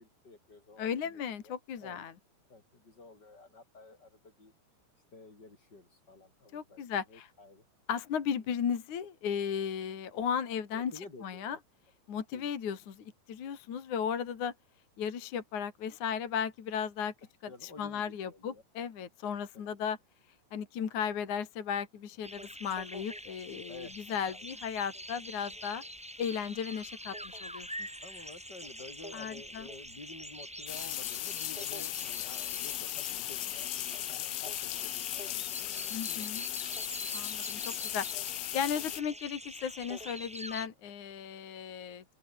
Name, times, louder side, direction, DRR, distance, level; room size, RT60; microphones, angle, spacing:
voice 1, 0.0-1.5 1.8-2.0 2.5-4.5 5.1-6.8 7.1-7.7 10.7-11.6 12.3-12.5 17.5-18.6 19.2-19.6 23.7-24.5 28.0-36.7 37.1-37.2, left 3 dB, 20° left, 6.7 m, -52 dB
voice 2, 0.8-2.1 6.5-7.3 7.9-10.9 11.2-11.6 12.1-14.5 15.0-17.1 17.4-20.0 20.5-25.8 26.2-27.9 29.1-29.7 35.9-36.4 37.1-42.0, left 7 dB, 45° left, 3.3 m, -35 dB
sound 1, 22.2-40.7, equal, ahead, 4.7 m, -45 dB
sound 2, 30.7-39.0, left 20 dB, 90° left, 3.4 m, -37 dB
open air
omnidirectional pair, 5.6 m